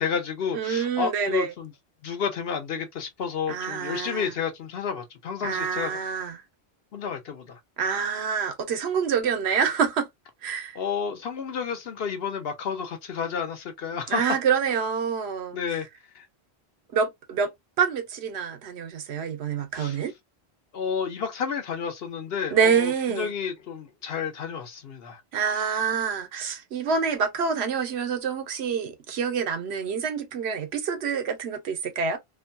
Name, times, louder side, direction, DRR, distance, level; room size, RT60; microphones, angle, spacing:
voice 1, 0.0-1.7 2.0-6.0 6.9-7.6 10.7-14.2 15.5-15.9 16.1-16.3 19.7-20.0 20.7-25.2, left 6 dB, 70° left, 0.9 m, -31 dB
voice 2, 0.5-1.5 3.5-4.3 5.4-6.4 7.8-10.1 10.4-10.8 14.1-15.6 16.9-17.5 17.8-20.1 22.5-23.3 25.3-32.2, right 6 dB, 85° right, 1.0 m, -27 dB
2.7 x 2.2 x 2.6 m
omnidirectional pair, 1.1 m